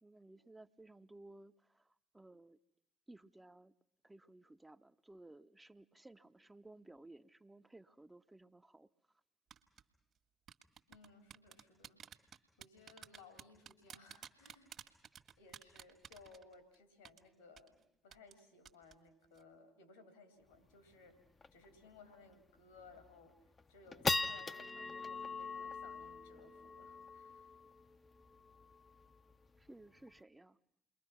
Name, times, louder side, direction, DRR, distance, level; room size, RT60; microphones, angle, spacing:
voice 1, 0.0-2.6 3.1-3.7 4.0-8.9 29.6-30.6, right 2 dB, 15° right, 0.9 m, -58 dB
sound 1, 9.5-9.8 10.5-16.7 17.0-17.2 17.6-17.7 18.1-18.4 18.7-18.9 19.2-19.4, right 8 dB, 50° right, 1.8 m, -53 dB
voice 2, 10.9-12.0 12.6-14.8 15.4-21.2 21.5-27.6, left 4 dB, 80° left, 3.3 m, -61 dB
sound 2, 20.5-20.6 20.9-21.0 21.4-21.7 22.1-22.2 22.8-23.1 23.6-30.2, left 3 dB, 30° left, 0.8 m, -42 dB
28.5 x 22.0 x 6.1 m
figure-of-eight pair, 45°, 0 cm